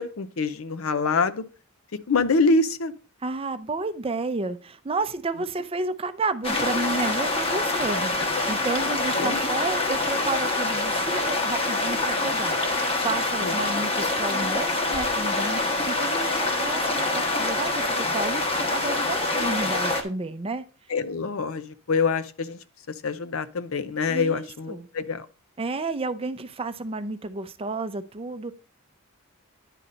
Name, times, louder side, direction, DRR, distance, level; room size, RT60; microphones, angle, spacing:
voice 1, 0.0-1.4 2.1-2.9 9.2-9.4 13.4-13.5 20.9-22.6 23.0-25.2, left 4 dB, 80° left, 0.6 m, -25 dB
voice 2, 3.2-20.6 24.1-24.9 25.6-28.5, right 3 dB, 25° right, 0.5 m, -31 dB
sound 1, 6.4-20.0, left 2 dB, 30° left, 1.1 m, -25 dB
9.9 x 4.1 x 5.0 m
head